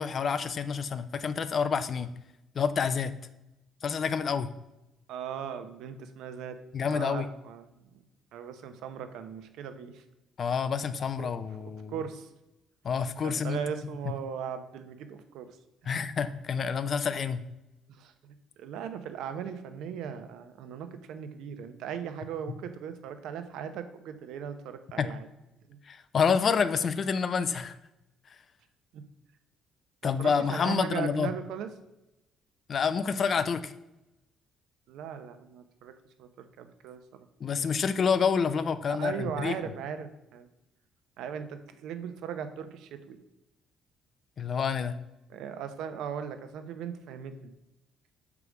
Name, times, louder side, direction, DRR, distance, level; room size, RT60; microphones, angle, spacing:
voice 1, 0.0-2.1 2.5-3.1 3.8-4.5 6.7-7.3 10.4-11.9 12.8-13.6 15.9-17.4 25.0-25.1 25.9-27.7 30.0-31.3 32.7-33.7 37.4-39.6 44.4-44.9, left 6 dB, 35° left, 12 dB, 0.5 m, -28 dB
voice 2, 5.1-6.6 6.9-8.0 8.3-10.0 11.2-11.3 11.9-12.3 13.2-15.6 15.8-16.1 17.9-25.3 25.7-25.8 28.9-29.0 30.2-31.7 34.9-35.9 36.2-37.3 39.0-40.5 41.2-43.2 45.3-47.5, right 8 dB, 75° right, 9 dB, 0.8 m, -38 dB
6.7 x 4.8 x 4.9 m, 0.94 s
cardioid pair, 150°, 0 cm